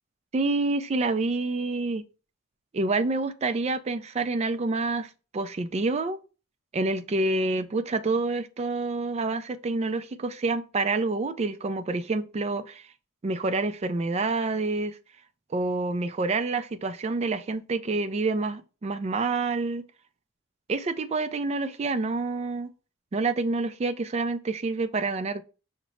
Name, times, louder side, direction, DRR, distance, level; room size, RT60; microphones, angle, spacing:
voice 1, 0.3-2.0 2.7-6.2 6.7-12.8 13.2-15.0 15.5-19.8 20.7-22.7 23.1-25.4, right 3 dB, 30° right, 0.3 m, -27 dB
5.7 x 2.0 x 4.2 m
head